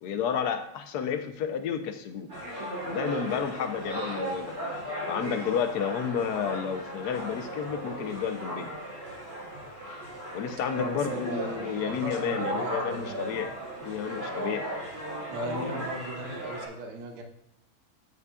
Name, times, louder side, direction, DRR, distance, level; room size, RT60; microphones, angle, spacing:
voice 1, 0.0-2.3 2.9-4.6 5.1-8.7 10.3-13.5 13.8-14.7 15.4-15.9, left 7 dB, 65° left, 7 dB, 1.1 m, -31 dB
sound 1, 2.3-16.7, right 1 dB, 55° right, 3.9 m, -36 dB
voice 2, 10.8-13.3 15.3-17.2, right 2 dB, 75° right, 3 dB, 1.9 m, -38 dB
9.3 x 8.4 x 2.4 m, 0.82 s
omnidirectional pair, 2.3 m